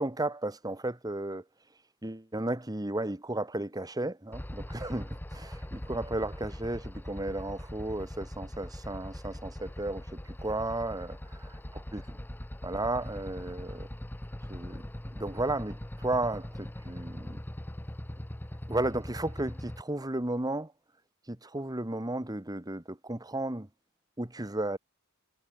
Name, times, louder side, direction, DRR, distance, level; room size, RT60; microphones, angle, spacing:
voice 1, 0.0-1.4 2.0-10.1 10.4-11.5 11.9-12.2 12.6-13.9 14.5-14.8 15.1-17.4 18.7-20.7 21.3-23.7 24.2-24.8, right 2 dB, 15° right, 1.5 m, -34 dB
sound 1, 4.3-19.8, left 1 dB, 10° left, 0.7 m, -41 dB
head